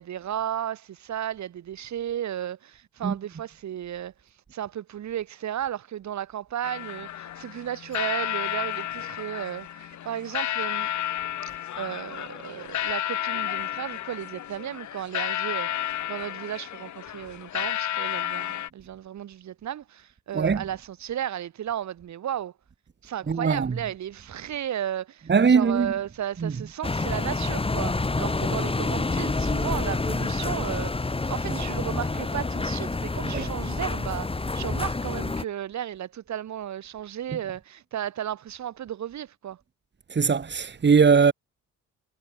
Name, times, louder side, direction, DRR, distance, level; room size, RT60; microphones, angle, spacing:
voice 1, 0.0-4.1 4.5-10.9 11.8-22.5 23.0-39.6, right 10 dB, 65° right, 4.6 m, -34 dB
sound 1, 6.6-18.7, left 11 dB, 70° left, 4.0 m, -32 dB
voice 2, 23.3-23.8 25.3-25.9 26.4-26.5 31.5-31.6 33.2-33.5 40.1-41.3, right 5 dB, 35° right, 3.7 m, -21 dB
sound 2, 26.8-35.4, left 3 dB, 20° left, 2.4 m, -28 dB
cardioid pair, 90°, 30 cm